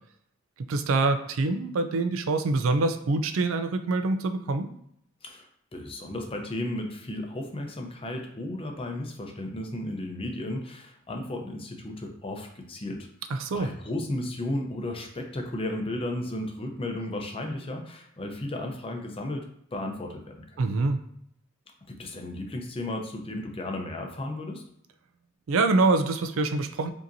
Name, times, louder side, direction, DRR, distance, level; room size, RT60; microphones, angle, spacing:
voice 1, 0.7-4.7 13.3-13.7 20.6-21.0 25.5-26.9, right 3 dB, 75° right, 8 dB, 0.4 m, -25 dB
voice 2, 5.2-13.1 13.5-19.4 19.7-20.6 21.9-24.6, left 1 dB, 25° left, 3 dB, 0.6 m, -34 dB
5.1 x 2.8 x 2.6 m, 0.72 s
head